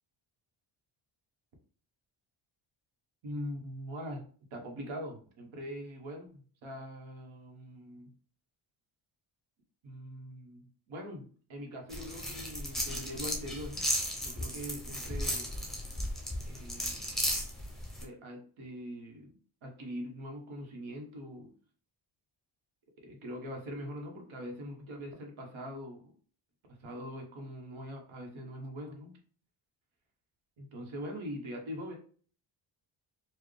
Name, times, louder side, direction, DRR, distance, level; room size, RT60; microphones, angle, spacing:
voice 1, 3.2-4.3 4.5-8.1 9.8-13.9 14.2-15.6 16.5-17.1 18.0-19.3 19.6-21.5 23.0-26.1 26.8-29.1 30.6-32.0, equal, 75° right, 2 dB, 1.3 m, -42 dB
sound 1, 11.9-18.0, equal, ahead, 0.6 m, -35 dB
4.6 x 2.2 x 3.2 m, 0.43 s
wide cardioid pair, 140°, 49 cm